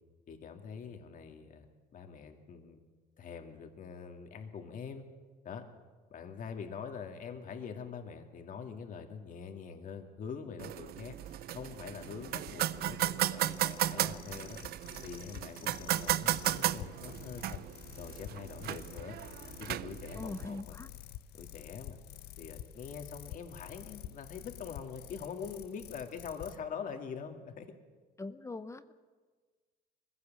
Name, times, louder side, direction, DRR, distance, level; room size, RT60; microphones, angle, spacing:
voice 1, 0.3-1.7 1.9-2.8 3.2-5.0 5.4-5.6 6.1-11.2 11.5-14.6 15.0-17.6 18.0-19.2 19.6-20.8 21.3-22.0 22.4-27.7, left 6 dB, 50° left, 5 dB, 2.2 m, -44 dB
sound 1, 10.6-20.6, right 13 dB, 65° right, 0.6 m, -35 dB
sound 2, 11.2-26.6, left 12 dB, 75° left, 0.8 m, -49 dB
voice 2, 20.2-20.9 28.2-28.9, left 3 dB, 15° left, 12 dB, 0.7 m, -42 dB
21.5 x 16.0 x 7.5 m, 1.4 s
cardioid pair, 110°, 17 cm